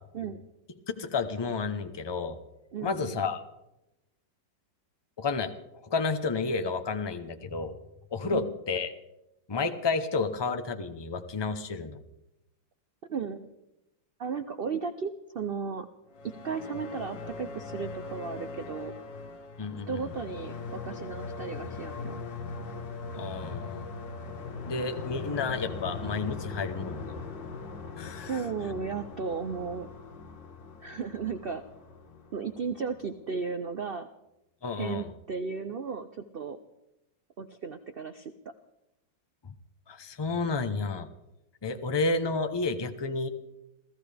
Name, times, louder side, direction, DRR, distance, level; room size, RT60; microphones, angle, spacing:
voice 1, 0.9-2.4 2.8-3.4 5.2-5.5 5.8-7.7 8.1-8.9 9.5-12.0 19.6-20.1 23.1-23.9 24.6-27.1 28.0-28.4 34.6-35.1 39.9-41.1 41.6-43.3, left 4 dB, 30° left, 7 dB, 0.4 m, -31 dB
voice 2, 2.7-3.2 8.3-8.5 13.1-13.5 14.2-15.9 16.2-18.9 19.9-22.2 28.2-29.9 30.8-31.6 32.3-34.1 34.8-36.6 37.4-38.3, right 5 dB, 85° right, 9 dB, 0.5 m, -35 dB
sound 1, 16.1-33.0, left 4 dB, 90° left, 2.1 m, -40 dB
27.5 x 15.0 x 3.4 m, 0.92 s
omnidirectional pair, 1.9 m